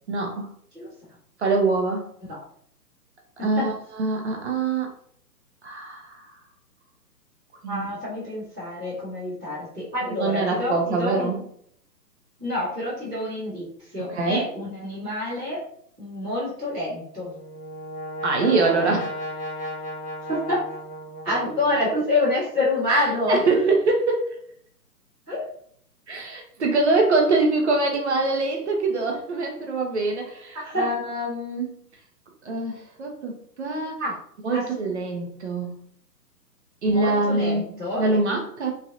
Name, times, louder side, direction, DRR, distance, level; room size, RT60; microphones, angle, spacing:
voice 1, 0.1-0.5 1.4-2.0 3.4-4.9 5.6-6.2 7.6-7.9 10.2-11.4 14.0-14.5 18.2-19.2 22.9-24.3 26.1-31.7 32.4-34.0 34.4-35.8 36.8-37.7 38.0-38.7, right 3 dB, 45° right, 2 dB, 0.6 m, -24 dB
voice 2, 3.4-3.7 7.7-11.4 12.4-15.6 16.0-17.3 20.2-20.6 21.2-23.4 25.3-25.4 30.5-30.8 34.0-34.1 34.5-34.6 36.8-38.1, left 2 dB, 5° left, -21 dB, 0.5 m, -27 dB
Brass instrument, 17.0-21.8, left 1 dB, 25° left, 0.8 m, -35 dB
3.1 x 2.6 x 2.5 m, 0.63 s
hypercardioid pair, 140°, 50 cm